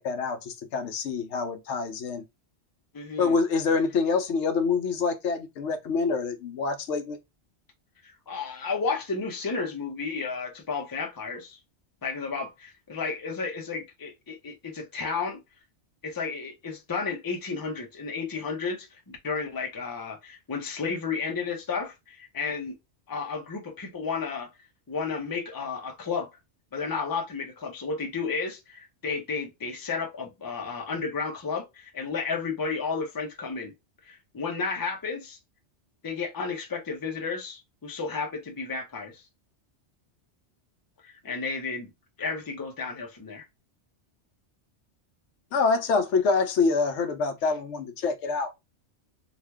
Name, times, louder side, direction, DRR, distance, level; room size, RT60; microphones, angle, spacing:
voice 1, 0.0-2.2 3.2-7.2 45.5-48.5, left 4 dB, 85° left, 0.9 m, -26 dB
voice 2, 2.9-3.3 8.0-11.6 12.0-15.4 16.0-22.7 23.1-24.5 24.9-26.3 26.7-33.7 34.1-35.4 36.0-39.2 41.0-41.9 42.2-43.5, left 4 dB, 25° left, 0.6 m, -32 dB
2.9 x 2.4 x 3.4 m
omnidirectional pair, 1.2 m